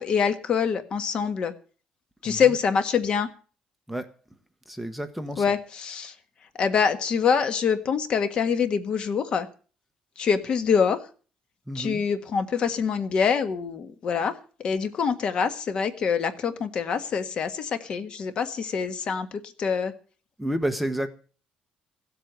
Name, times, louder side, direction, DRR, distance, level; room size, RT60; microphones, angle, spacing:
voice 1, 0.0-1.5 2.2-3.3 5.4-6.1 6.5-9.5 10.2-11.0 11.7-14.3 14.6-19.9, left 6 dB, 45° left, 10 dB, 1.6 m, -25 dB
voice 2, 4.7-5.4 11.7-12.0 20.4-21.1, right 1 dB, ahead, 8 dB, 1.1 m, -30 dB
16.0 x 8.2 x 8.1 m, 0.39 s
cardioid pair, 150°, 2 cm